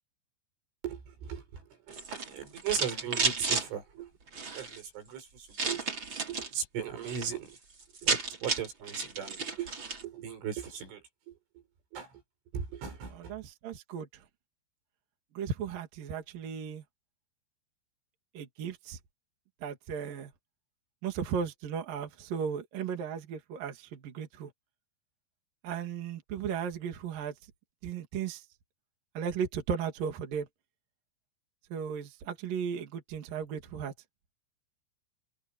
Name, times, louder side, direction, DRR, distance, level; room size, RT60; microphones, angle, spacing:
voice 1, 0.8-1.6 1.9-4.1 4.5-5.9 6.3-7.6 8.0-9.7 10.0-11.3 11.9-12.1 12.5-13.3, right 8 dB, 80° right, 8.4 m, -38 dB
sound 1, 1.9-3.7 4.3-4.8 5.5-6.5 6.9-7.3 7.6-7.7 7.8-10.0, right 4 dB, 30° right, 3.4 m, -32 dB
voice 2, 13.1-14.1 15.4-16.8 18.3-19.0 19.6-20.3 21.0-24.5 25.6-27.3 27.8-28.4 29.2-30.5 31.7-33.9, right 7 dB, 55° right, 3.6 m, -35 dB
omnidirectional pair, 5.5 m